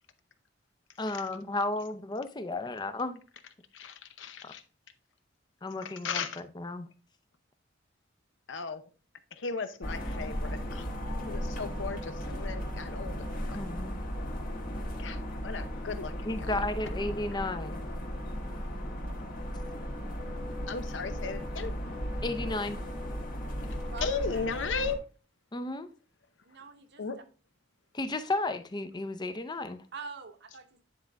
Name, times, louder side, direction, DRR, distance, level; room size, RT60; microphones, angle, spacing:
voice 1, 1.0-3.2 4.4-4.5 5.6-6.9 13.5-14.0 16.3-17.8 22.2-22.8 25.5-25.9 27.9-29.8, left 2 dB, 25° left, 0.5 m, -33 dB
voice 2, 3.7-4.6 5.8-6.4 8.5-8.8 9.3-10.9 11.3-13.6 15.0-16.3 16.8-16.9 20.7-21.7 24.0-25.0 27.0-27.2, left 5 dB, 75° left, 0.7 m, -36 dB
sound 1, 9.8-25.0, equal, 50° left, 1.4 m, -36 dB
voice 3, 23.9-24.8 26.4-27.0 29.9-30.8, right 4 dB, 65° right, 0.9 m, -45 dB
9.6 x 3.8 x 3.4 m
head